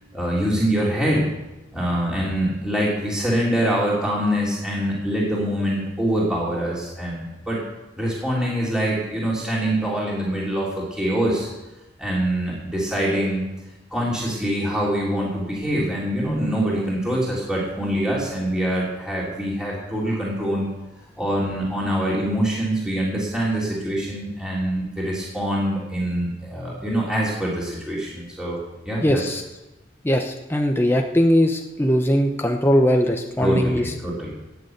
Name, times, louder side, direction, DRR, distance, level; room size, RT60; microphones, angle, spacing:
voice 1, 0.1-1.3 1.7-7.6 8.0-11.5 12.0-13.4 13.9-20.7 21.2-28.6 28.9-29.2 33.4-34.3, equal, 5° right, -6 dB, 3.4 m, -24 dB
voice 2, 29.0-29.4 30.0-33.9, equal, 15° left, 3 dB, 0.9 m, -20 dB
19.0 x 7.0 x 8.0 m, 1.0 s
head